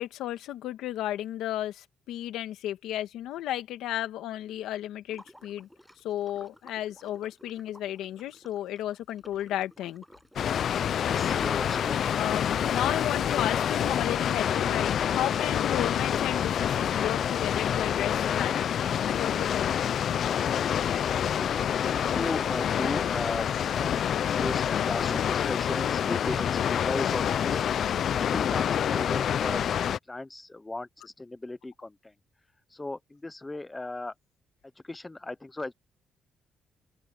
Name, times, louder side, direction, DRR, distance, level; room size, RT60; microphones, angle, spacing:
voice 1, 0.0-5.7 6.0-10.0 12.1-19.8 27.2-27.3 33.8-33.9, left 13 dB, 85° left, 1.9 m, -33 dB
Water / Liquid, 5.1-11.9, equal, ahead, 6.6 m, -55 dB
Water, 10.4-30.0, left 9 dB, 60° left, 0.6 m, -27 dB
voice 2, 10.9-12.3 12.8-13.0 21.1-23.4 23.7-23.9 24.3-27.6 28.1-32.1 32.7-34.1 34.8-35.7, left 2 dB, 15° left, 0.8 m, -36 dB
open air
cardioid pair, 90°, 0 cm